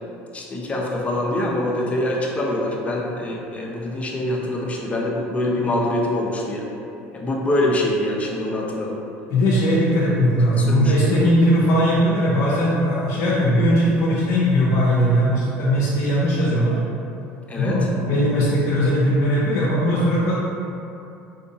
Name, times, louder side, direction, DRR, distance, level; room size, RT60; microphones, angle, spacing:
voice 1, 0.3-6.7 7.1-9.0 10.6-11.1 17.5-17.8, left 1 dB, 25° left, -2 dB, 0.6 m, -24 dB
voice 2, 9.3-16.8 17.6-20.3, equal, 65° left, -8 dB, 0.6 m, -19 dB
3.7 x 2.6 x 2.7 m, 2.7 s
supercardioid pair, 90°, 6 cm